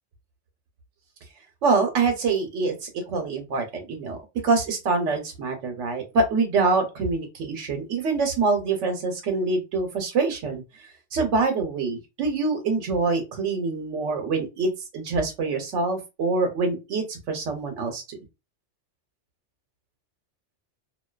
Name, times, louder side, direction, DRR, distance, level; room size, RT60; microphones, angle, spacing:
voice 1, 1.6-4.2 4.4-10.6 11.1-18.2, right 4 dB, 90° right, 4 dB, 1.0 m, -25 dB
2.5 x 2.2 x 2.3 m, 0.25 s
omnidirectional pair, 1.2 m